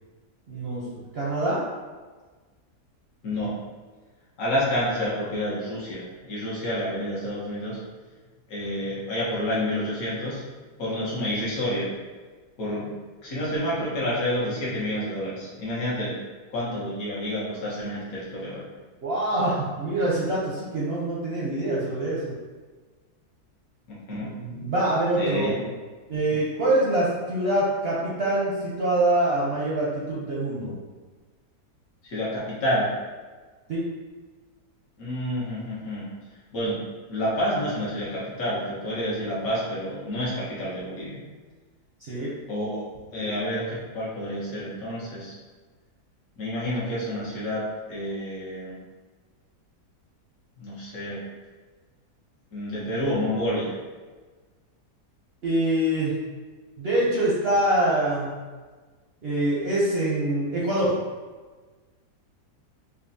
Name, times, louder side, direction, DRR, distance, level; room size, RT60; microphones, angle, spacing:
voice 1, 0.5-1.6 19.0-22.3 24.4-25.7 26.1-30.8 33.7-33.8 42.0-42.3 43.2-43.3 55.4-56.1 56.8-58.3 59.2-60.9, right 1 dB, 55° right, -7 dB, 0.7 m, -25 dB
voice 2, 4.4-7.8 8.5-10.4 10.8-11.9 12.6-12.9 13.2-16.2 16.5-18.6 24.1-24.6 25.2-25.5 32.0-32.9 35.0-36.1 36.5-36.8 37.1-41.2 42.5-42.8 43.1-45.4 46.4-48.8 50.6-51.2 52.5-53.7, equal, 60° left, -7 dB, 1.6 m, -29 dB
5.3 x 2.3 x 2.6 m, 1.4 s
omnidirectional pair, 1.7 m